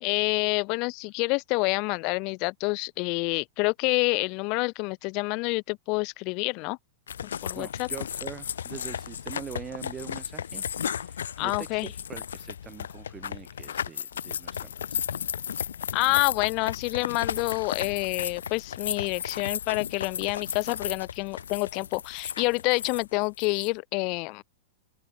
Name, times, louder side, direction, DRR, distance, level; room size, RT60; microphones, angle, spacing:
voice 1, 0.0-6.8 7.4-7.9 11.4-11.9 15.9-24.4, left 29 dB, 45° left, 0.4 m, -28 dB
sound 1, 7.1-23.7, left 8 dB, 75° left, 1.8 m, -34 dB
voice 2, 7.5-15.1, right 8 dB, 25° right, 1.6 m, -43 dB
open air
figure-of-eight pair, 100°, 0 cm